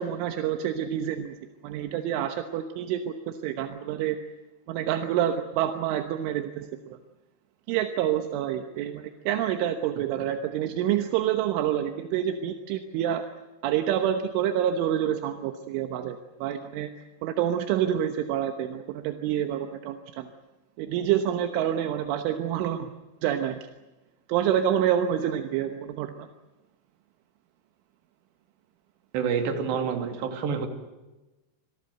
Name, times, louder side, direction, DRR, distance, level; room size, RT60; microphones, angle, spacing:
voice 1, 0.0-1.4 1.6-4.2 4.7-6.7 7.7-13.2 13.6-16.9 17.2-20.3 20.8-22.9 23.2-23.6 24.3-26.3, right 10 dB, 85° right, 7 dB, 3.6 m, -27 dB
voice 2, 29.1-30.7, right 6 dB, 65° right, 6 dB, 4.7 m, -28 dB
27.0 x 19.5 x 7.9 m, 1.1 s
omnidirectional pair, 5.5 m